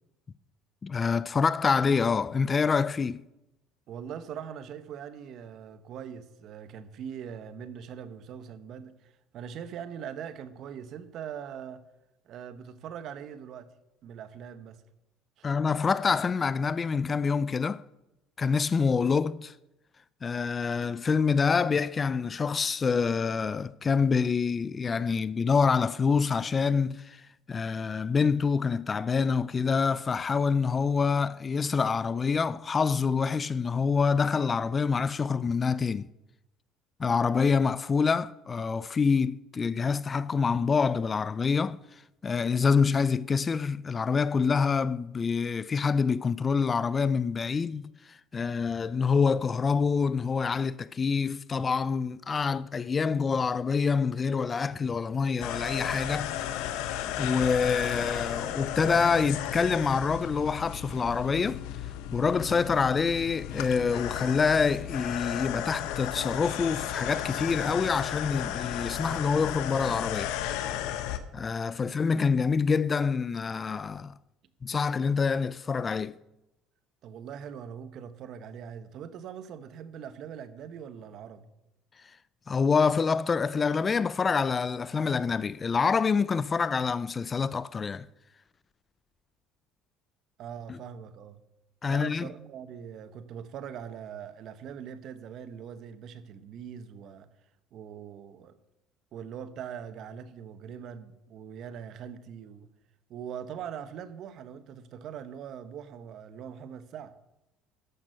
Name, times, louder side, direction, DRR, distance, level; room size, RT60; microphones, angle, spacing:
voice 1, 0.8-3.2 15.4-17.8 18.4-19.5 20.2-27.2 27.5-36.1 37.0-41.8 42.2-56.3 57.2-61.6 62.1-70.3 71.3-74.1 74.6-76.2 82.5-88.1 90.7-90.8 91.8-92.3, left 5 dB, 30° left, 0.4 m, -26 dB
voice 2, 3.9-11.8 12.2-13.7 14.0-14.8 15.4-15.5 71.8-71.9 77.0-81.5 90.4-91.4 91.9-97.3 97.7-98.6 99.1-102.7 103.1-107.1, right 8 dB, 55° right, 1.1 m, -42 dB
sound 1, 55.4-71.2, left 11 dB, 75° left, 0.9 m, -34 dB
13.5 x 6.1 x 6.6 m
supercardioid pair, 105°, 0 cm